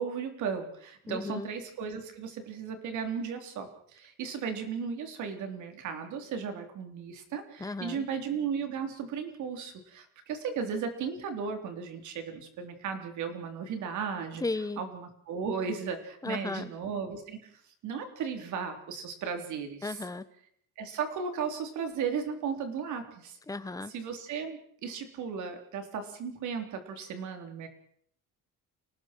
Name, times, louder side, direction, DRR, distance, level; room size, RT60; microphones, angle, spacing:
voice 1, 0.0-14.4 14.8-20.0 20.8-23.4 23.9-27.7, right 6 dB, 70° right, 6 dB, 3.8 m, -35 dB
voice 2, 1.1-1.5 7.6-8.1 14.4-14.8 16.2-16.7 19.8-20.2 23.5-23.9, left 3 dB, 10° left, 13 dB, 0.9 m, -35 dB
30.0 x 19.0 x 4.7 m, 0.64 s
cardioid pair, 150°, 31 cm